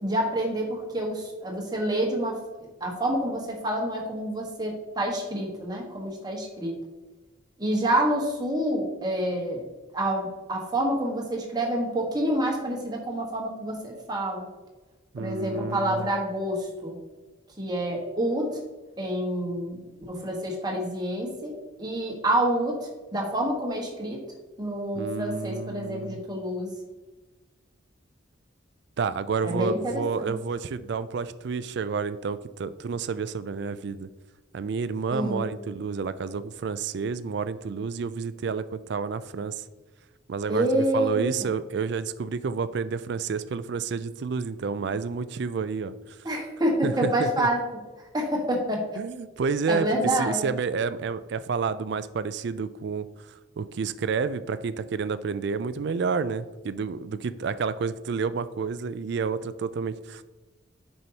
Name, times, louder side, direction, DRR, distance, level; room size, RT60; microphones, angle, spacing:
voice 1, 0.0-2.4 2.8-6.7 7.6-9.6 9.9-14.4 15.2-17.0 17.6-18.6 19.0-24.2 24.6-26.7 29.4-30.3 35.1-35.5 40.5-41.3 46.2-47.6 48.1-48.8 49.7-50.5, right 1 dB, 20° right, -1 dB, 1.4 m, -28 dB
voice 2, 15.1-16.1 24.9-26.2 29.0-34.1 34.5-39.6 40.3-46.2 46.8-47.5 49.0-60.2, right 5 dB, 55° right, 14 dB, 0.4 m, -30 dB
7.7 x 5.5 x 2.9 m, 1.2 s
head